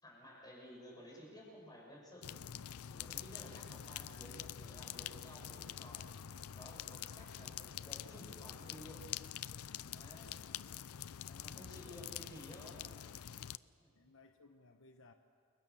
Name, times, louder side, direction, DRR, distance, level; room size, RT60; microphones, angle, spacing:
voice 1, 0.0-2.3 2.8-6.1 6.5-9.0 9.9-10.4 11.3-12.9 13.8-13.9, equal, 20° left, -1 dB, 6.5 m, -54 dB
sound 1, 2.2-13.6, left 10 dB, 80° left, 0.5 m, -46 dB
voice 2, 7.0-7.4 9.8-10.1 11.7-12.1 12.8-13.1 13.9-15.1, left 3 dB, 65° left, 6 dB, 1.1 m, -63 dB
30.0 x 23.5 x 7.1 m, 2.7 s
head